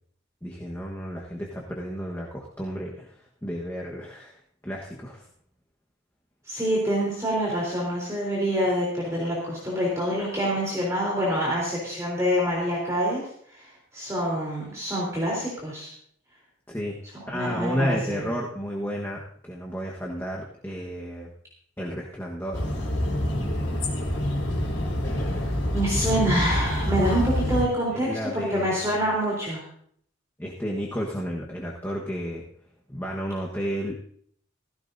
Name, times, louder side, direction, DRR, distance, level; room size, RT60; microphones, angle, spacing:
voice 1, 0.4-3.2 3.4-5.3 16.7-17.0 17.3-21.3 21.8-22.7 27.9-29.0 30.4-32.4 32.9-33.9, equal, 10° left, -3 dB, 1.3 m, -32 dB
voice 2, 6.5-13.2 13.5-15.9 17.1-18.3 25.7-29.6, equal, 15° right, -4 dB, 3.6 m, -26 dB
sound 1, 22.5-27.6, left 1 dB, 60° left, 4.5 m, -26 dB
16.5 x 15.5 x 2.7 m, 0.63 s
head